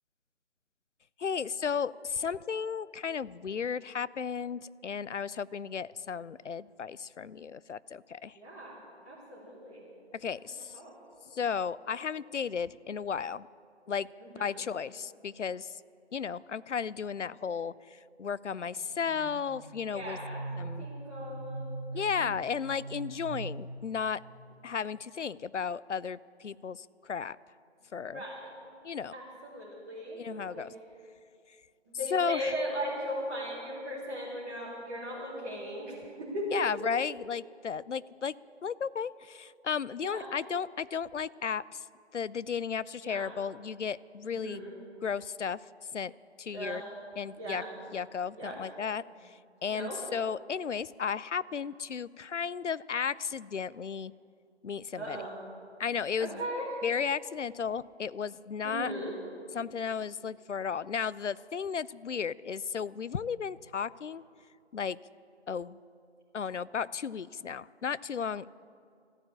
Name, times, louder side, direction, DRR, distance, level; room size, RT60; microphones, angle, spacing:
voice 1, 1.2-8.3 10.2-10.7 11.3-13.4 13.9-14.1 14.4-15.7 16.1-17.7 18.2-20.2 20.6-20.9 21.9-24.2 24.6-27.4 27.9-28.2 28.8-29.1 30.2-30.7 32.1-32.5 36.5-38.3 38.6-41.8 42.1-44.6 45.0-45.6 45.9-46.1 46.4-46.8 47.2-47.6 47.9-49.0 49.6-54.1 54.6-55.2 55.8-56.4 56.8-58.9 59.5-64.2 64.7-65.0 65.5-65.8 66.3-68.5, left 6 dB, 85° left, 19 dB, 0.5 m, -34 dB
voice 2, 8.3-8.8 9.0-9.8 10.7-10.9 14.2-14.6 19.9-20.4 20.8-21.7 28.1-28.5 29.1-30.2 30.5-30.7 31.9-36.6 40.0-40.3 43.0-43.3 44.3-44.7 46.5-46.8 47.3-47.7 48.3-48.6 49.6-50.0 55.0-55.3 56.2-56.7 58.6-59.1, equal, 10° right, -12 dB, 1.7 m, -38 dB
sound 1, 18.8-24.3, right 2 dB, 25° left, 1.6 m, -42 dB
14.5 x 8.9 x 9.9 m, 2.4 s
figure-of-eight pair, 160°, 35 cm